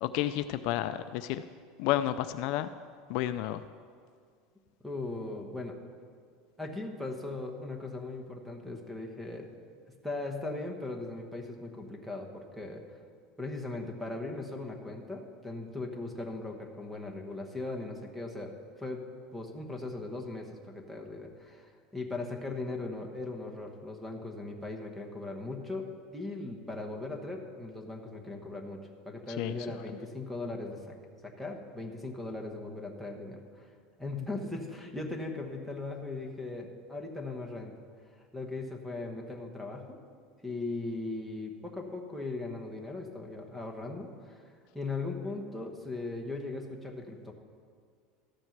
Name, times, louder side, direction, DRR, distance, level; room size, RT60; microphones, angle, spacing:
voice 1, 0.0-1.4 1.8-2.7 3.1-3.6 29.4-29.8, left 13 dB, 55° left, 11 dB, 0.3 m, -31 dB
voice 2, 4.8-5.7 6.6-9.5 10.0-12.8 13.4-18.5 18.8-19.0 19.3-25.9 26.1-28.8 29.0-31.0 31.2-33.7 34.0-37.7 38.1-40.0 40.4-47.3, left 2 dB, 5° right, 3 dB, 1.1 m, -38 dB
13.0 x 7.7 x 5.9 m, 2.1 s
supercardioid pair, 160°, 0 cm